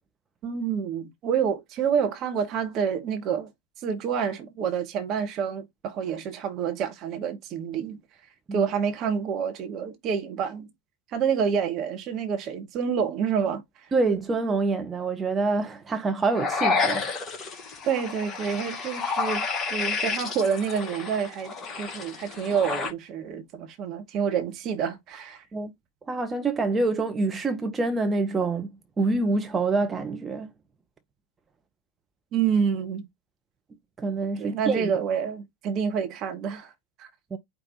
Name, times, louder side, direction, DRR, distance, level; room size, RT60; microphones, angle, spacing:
voice 1, 0.4-3.5 3.8-8.0 8.5-10.7 11.1-13.6 17.9-25.4 32.3-33.1 34.4-36.7 37.0-37.1, right 7 dB, 35° right, 0.9 m, -28 dB
voice 2, 13.9-17.1 25.5-25.7 26.1-28.7 29.0-30.5 34.0-34.9 37.3-37.4, right 3 dB, 15° right, 0.6 m, -26 dB
sound 1, 16.3-22.9, left 4 dB, 25° left, 1.0 m, -30 dB
5.0 x 2.3 x 4.1 m
figure-of-eight pair, 90°, 0 cm